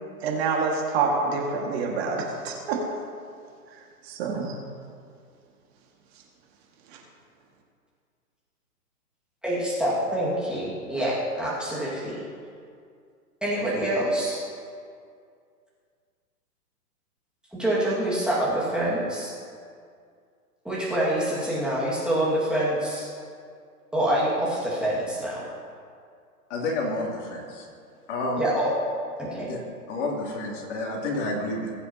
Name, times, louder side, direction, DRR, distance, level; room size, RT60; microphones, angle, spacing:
voice 1, 0.2-2.8 4.1-4.6, right 4 dB, 40° right, 0 dB, 2.0 m, -26 dB
voice 2, 9.4-12.2 13.4-14.4 17.5-19.3 20.6-23.1 23.9-25.5 28.4-28.7 29.2-29.5, right 1 dB, ahead, -8 dB, 2.0 m, -26 dB
voice 3, 26.5-27.7 28.1-28.4 29.5-29.6 29.9-31.7, left 2 dB, 45° left, -2 dB, 2.8 m, -29 dB
21.0 x 8.5 x 2.9 m, 2.2 s
hypercardioid pair, 140°, 48 cm